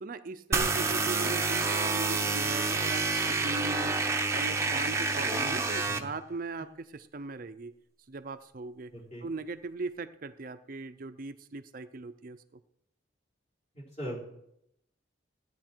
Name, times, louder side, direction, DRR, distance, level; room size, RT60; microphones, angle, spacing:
voice 1, 0.0-4.0 4.3-7.7 8.1-8.9 9.2-12.4, right 3 dB, 45° right, 9 dB, 0.5 m, -39 dB
sound 1, 0.5-6.0, right 3 dB, 15° right, 0.7 m, -28 dB
voice 2, 5.2-6.1 8.9-9.3 13.7-14.2, equal, 35° left, -5 dB, 3.9 m, -41 dB
15.5 x 9.9 x 4.5 m, 0.78 s
head